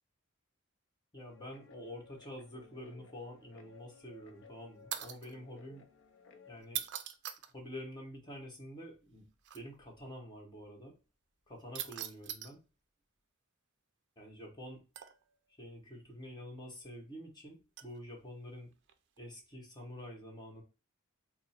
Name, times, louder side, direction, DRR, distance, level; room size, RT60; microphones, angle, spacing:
voice 1, 1.1-5.9 6.5-6.8 7.5-9.3 9.5-10.9 11.5-12.6 14.2-14.8 15.6-18.7 19.2-20.6, equal, 20° left, 0 dB, 1.1 m, -48 dB
Guitar, 1.2-6.6, left 6 dB, 60° left, 0.5 m, -59 dB
sound 1, 4.9-5.3 6.6-7.5 9.4-9.6 11.8-12.5 15.0-15.4 17.8-18.0 18.9-19.2, right 10 dB, 55° right, 0.4 m, -41 dB
3.4 x 2.0 x 4.2 m, 0.29 s
head